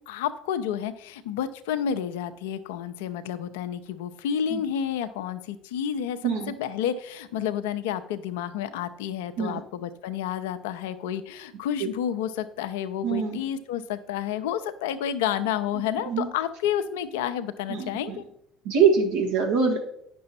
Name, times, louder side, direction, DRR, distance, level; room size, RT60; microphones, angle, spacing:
voice 1, 0.1-6.2 6.5-18.2, left 9 dB, 70° left, 12 dB, 0.6 m, -30 dB
voice 2, 6.2-6.5 9.4-9.6 11.8-11.9 13.0-13.4 15.7-16.3 17.7-18.2 18.6-19.8, right 6 dB, 70° right, 0 dB, 1.5 m, -24 dB
9.4 x 6.2 x 4.2 m, 0.74 s
figure-of-eight pair, 60°, 0 cm